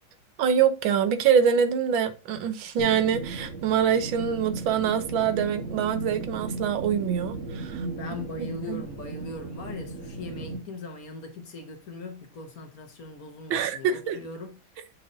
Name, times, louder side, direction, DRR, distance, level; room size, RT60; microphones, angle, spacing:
voice 1, 0.4-7.9 8.4-8.8 13.5-14.2, right 7 dB, 85° right, 1.7 m, -25 dB
sound 1, 2.8-10.6, right 3 dB, 45° right, 1.4 m, -36 dB
voice 2, 7.8-14.6, left 3 dB, 50° left, 1.4 m, -40 dB
7.5 x 5.6 x 2.6 m
omnidirectional pair, 2.1 m